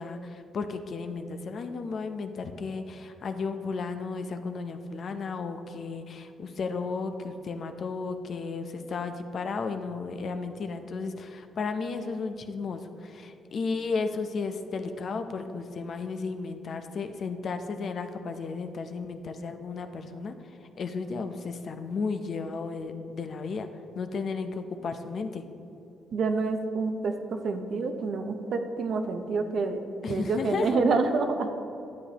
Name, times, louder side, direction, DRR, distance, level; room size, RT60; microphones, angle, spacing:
voice 1, 0.0-20.3 20.8-23.7 23.9-25.4 30.0-30.8, left 4 dB, 55° left, 7 dB, 0.6 m, -34 dB
voice 2, 26.1-29.8 30.1-31.5, right 4 dB, 60° right, 6 dB, 0.8 m, -27 dB
11.5 x 8.2 x 2.9 m, 2.9 s
cardioid pair, 90°, 0 cm